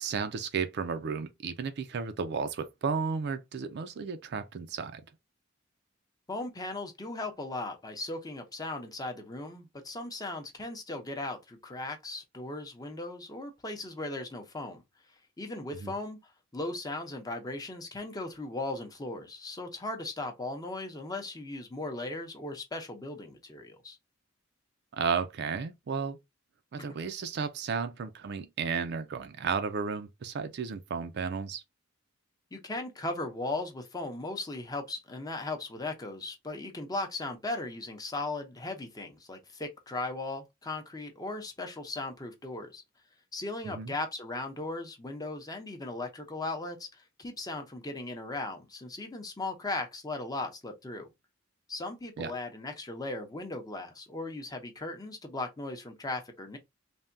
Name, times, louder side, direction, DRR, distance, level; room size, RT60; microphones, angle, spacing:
voice 1, 0.0-5.0 15.8-15.9 24.9-26.2 26.7-31.6 43.6-43.9 52.2-52.3, right 5 dB, 55° right, 0.4 m, -33 dB
voice 2, 6.3-14.8 15.4-24.0 32.5-42.8 43.3-51.1 51.7-56.6, left 2 dB, 20° left, 0.6 m, -37 dB
3.4 x 2.2 x 2.5 m
head